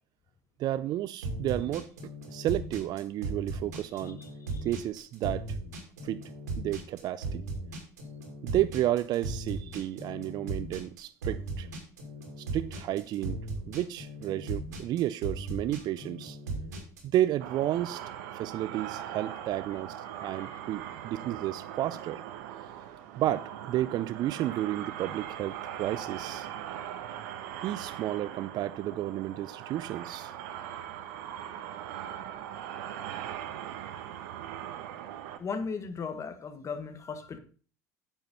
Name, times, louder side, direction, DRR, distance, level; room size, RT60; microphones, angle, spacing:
voice 1, 0.6-1.9 2.3-4.2 4.6-5.5 6.0-6.2 6.6-7.4 8.4-11.7 12.4-13.4 13.7-16.4 17.0-18.0 18.3-22.2 23.2-26.5 27.6-30.4, right 13 dB, 50° right, 0.5 m, -31 dB
sound 1, 1.2-17.2, right 2 dB, 90° right, 2.5 m, -37 dB
voice 2, 3.9-4.7 19.7-20.6 20.8-21.0 35.4-37.4, left 5 dB, 35° left, 1.6 m, -39 dB
sound 2, 17.4-35.4, right 10 dB, 75° right, 1.1 m, -40 dB
8.9 x 5.6 x 5.4 m
hypercardioid pair, 80°, 9 cm